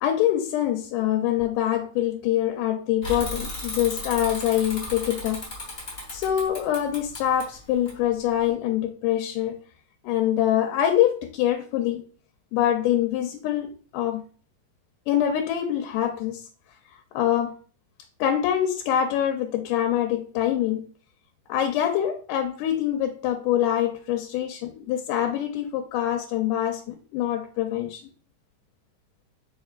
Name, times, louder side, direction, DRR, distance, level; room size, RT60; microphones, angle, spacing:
voice 1, 0.0-5.4 6.1-9.6 10.0-12.0 12.5-14.2 15.1-16.4 17.1-17.6 18.2-20.9 21.5-28.0, left 11 dB, 85° left, 2.1 m, -25 dB
Bicycle / Mechanisms, 3.0-8.5, left 2 dB, 50° left, 0.8 m, -36 dB
4.6 x 4.4 x 2.4 m
omnidirectional pair, 3.7 m